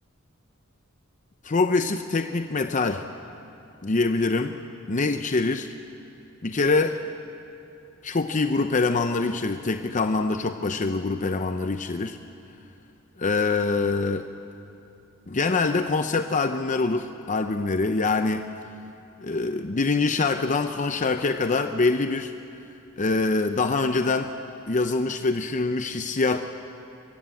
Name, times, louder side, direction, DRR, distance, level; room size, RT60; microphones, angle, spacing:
voice 1, 1.4-3.0 3.8-4.6 4.9-5.7 6.4-7.0 8.0-12.2 13.2-14.3 15.3-18.4 19.2-22.3 23.0-24.3 24.7-26.4, left 3 dB, 40° left, 7 dB, 0.7 m, -24 dB
23.0 x 21.5 x 8.3 m, 2.7 s
head